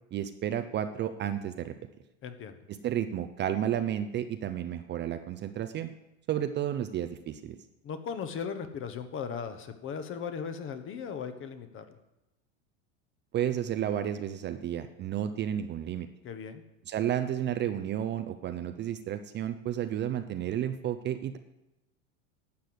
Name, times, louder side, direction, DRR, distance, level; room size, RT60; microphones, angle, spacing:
voice 1, 0.1-1.7 2.7-5.9 6.3-7.6 13.3-16.1 16.9-21.4, right 10 dB, 30° right, 9 dB, 0.6 m, -32 dB
voice 2, 2.2-2.6 7.8-12.0 16.2-16.6, left 6 dB, 35° left, 9 dB, 1.2 m, -37 dB
11.5 x 6.8 x 7.9 m, 0.94 s
supercardioid pair, 120°, 37 cm